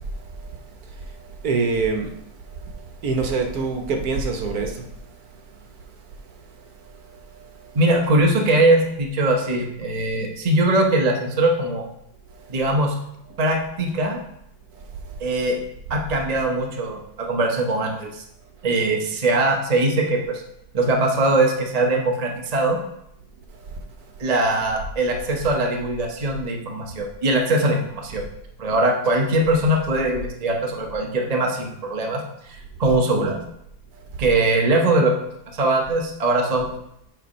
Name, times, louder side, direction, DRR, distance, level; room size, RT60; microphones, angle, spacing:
voice 1, 1.4-2.2 2.6-2.8 3.0-4.8 7.3-7.4 23.7-23.8, right 4 dB, 65° right, 4 dB, 1.3 m, -24 dB
voice 2, 7.7-11.8 12.5-12.9 13.4-14.2 15.2-15.5 15.9-18.2 18.6-20.4 20.7-22.8 24.2-28.2 28.6-33.4 34.2-35.1 35.5-36.7, right 2 dB, 35° right, 1 dB, 0.6 m, -21 dB
7.5 x 3.4 x 5.2 m, 0.77 s
omnidirectional pair, 1.8 m